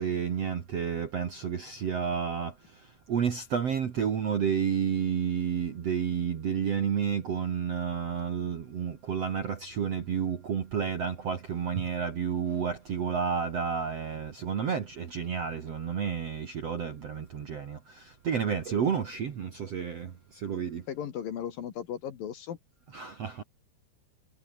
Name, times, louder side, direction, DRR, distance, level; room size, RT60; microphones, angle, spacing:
voice 1, 0.0-2.5 3.1-20.8 22.9-23.4, right 7 dB, 50° right, 2.0 m, -30 dB
voice 2, 20.9-22.6, left 9 dB, 60° left, 3.1 m, -36 dB
omnidirectional pair, 5.2 m